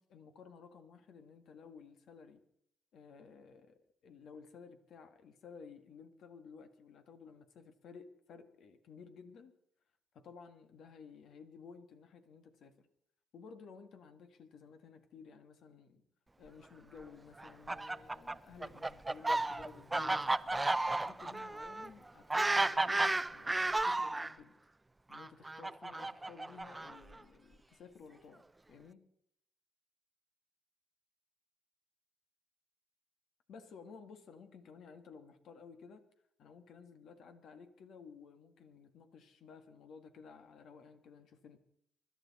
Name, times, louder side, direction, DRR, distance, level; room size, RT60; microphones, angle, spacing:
voice 1, 0.0-2.4 2.9-9.6 10.1-12.9 13.3-16.0 16.4-20.3 20.7-24.5 25.1-29.1 33.5-36.0 36.4-41.6, left 5 dB, 70° left, 8 dB, 1.8 m, -55 dB
Fowl, 17.4-24.3 25.1-27.2, right 2 dB, 15° right, 0.5 m, -33 dB
24.5 x 12.0 x 4.3 m, 0.73 s
cardioid pair, 90°, 0 cm